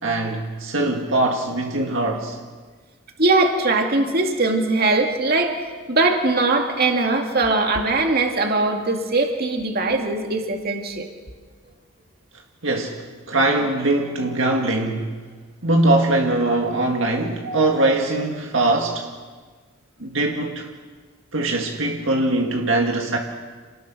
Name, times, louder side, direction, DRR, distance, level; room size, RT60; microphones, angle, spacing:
voice 1, 0.0-2.4 12.6-13.0 13.3-15.1 15.6-19.1 20.0-20.7 21.3-23.2, right 2 dB, 65° right, 1 dB, 2.0 m, -21 dB
voice 2, 3.2-5.5 5.9-11.1 17.4-17.7, right 2 dB, 45° right, 3 dB, 2.4 m, -21 dB
29.0 x 19.5 x 6.2 m, 1.5 s
head